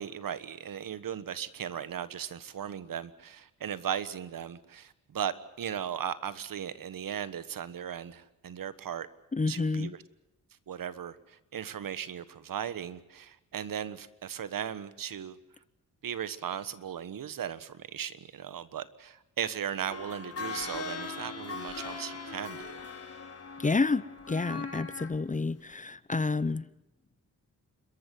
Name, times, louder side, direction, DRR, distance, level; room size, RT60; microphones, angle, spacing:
voice 1, 0.0-9.1 9.5-10.0 10.7-15.4 16.0-22.8, right 9 dB, 70° right, 1.4 m, -37 dB
voice 2, 9.3-9.9 23.6-26.6, left 3 dB, 20° left, 0.8 m, -29 dB
sound 1, 19.9-25.2 25.7-25.8, left 4 dB, 45° left, 4.2 m, -40 dB
28.5 x 14.0 x 9.4 m
cardioid pair, 65°, 35 cm